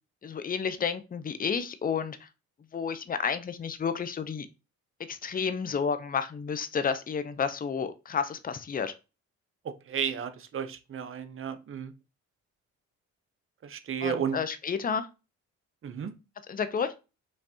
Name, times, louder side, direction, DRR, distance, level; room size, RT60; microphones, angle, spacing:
voice 1, 0.2-2.3 2.7-4.5 5.1-8.9 14.0-15.1 16.5-16.9, left 6 dB, 30° left, 0.6 m, -31 dB
voice 2, 9.6-11.9 13.6-14.4 15.8-16.1, right 8 dB, 45° right, 0.7 m, -33 dB
5.4 x 3.2 x 2.8 m
cardioid pair, 90°, 30 cm